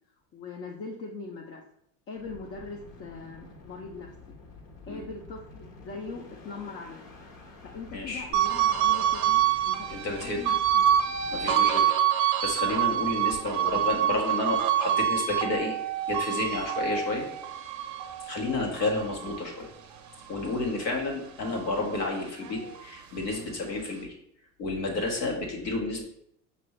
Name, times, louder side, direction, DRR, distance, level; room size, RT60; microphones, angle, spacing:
voice 1, 0.3-1.6 2.1-4.4 4.9-7.1 7.6-10.8 11.3-11.6, left 4 dB, 30° left, 0 dB, 0.5 m, -41 dB
sound 1, 2.2-11.7, left 3 dB, 60° left, 1.1 m, -49 dB
voice 2, 7.9-8.3 9.9-10.4 11.3-15.8 16.1-17.2 18.2-19.7 20.3-24.1 24.6-26.0, left 2 dB, 90° left, 0 dB, 1.2 m, -31 dB
sound 2, 8.3-20.9 21.3-23.0, right 10 dB, 35° right, 0.6 m, -27 dB
5.3 x 2.6 x 3.0 m, 0.72 s
hypercardioid pair, 85°, 50 cm